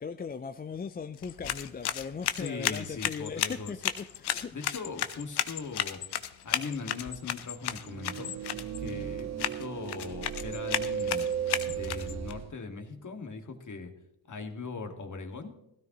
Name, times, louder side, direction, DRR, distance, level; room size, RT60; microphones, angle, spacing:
voice 1, 0.0-4.5, left 5 dB, 20° left, 0.5 m, -38 dB
sound 1, 1.1-12.3, left 11 dB, 65° left, 0.9 m, -34 dB
voice 2, 2.4-3.7 4.5-6.0 6.4-8.3 8.8-11.2 11.7-13.9 14.3-15.6, left 4 dB, 45° left, 2.0 m, -39 dB
sound 2, 7.8-12.5, right 8 dB, 40° right, 0.7 m, -35 dB
16.0 x 13.0 x 3.0 m
supercardioid pair, 50°, 42 cm